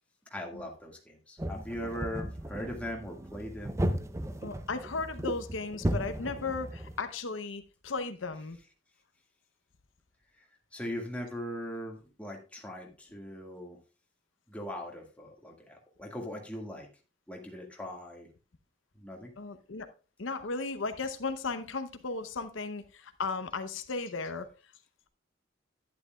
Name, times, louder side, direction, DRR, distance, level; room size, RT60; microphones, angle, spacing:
voice 1, 0.3-3.8 10.7-13.8 14.5-16.9 17.3-18.3 19.0-19.3, equal, 5° left, 1.8 m, -40 dB
sound 1, 1.4-7.0, right 1 dB, 15° right, 0.5 m, -35 dB
voice 2, 4.4-8.6 19.4-19.9 20.2-24.5, left 4 dB, 80° left, 0.8 m, -35 dB
11.0 x 9.9 x 2.3 m
head